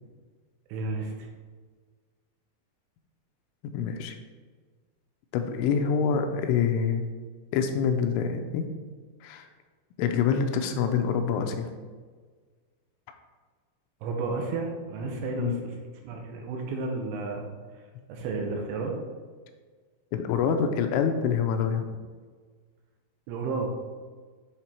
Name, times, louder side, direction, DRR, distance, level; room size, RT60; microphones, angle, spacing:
voice 1, 0.7-1.3 14.0-15.7 16.0-17.5 18.1-19.0 23.3-23.7, right 3 dB, 85° right, 1 dB, 3.1 m, -32 dB
voice 2, 3.6-4.2 5.3-7.1 7.5-8.7 9.2-9.5 10.0-11.7 15.4-15.6 20.1-21.9, left 6 dB, 85° left, 5 dB, 3.0 m, -26 dB
9.0 x 3.6 x 4.4 m, 1.5 s
omnidirectional pair, 5.5 m